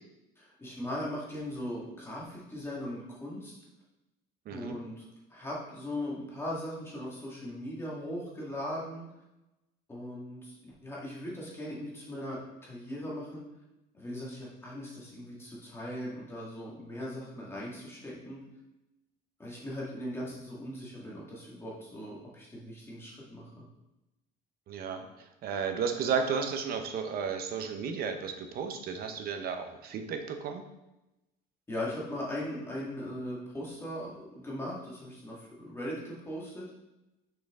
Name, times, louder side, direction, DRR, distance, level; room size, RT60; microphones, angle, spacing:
voice 1, 0.4-3.6 4.5-9.1 9.9-13.5 13.9-18.4 19.4-23.7 31.7-36.7, left 1 dB, 10° left, -5 dB, 1.9 m, -39 dB
voice 2, 4.5-4.8 24.7-25.1 25.4-30.6, right 6 dB, 50° right, 6 dB, 0.9 m, -33 dB
6.2 x 6.0 x 3.7 m, 0.96 s
cardioid pair, 145°, 20 cm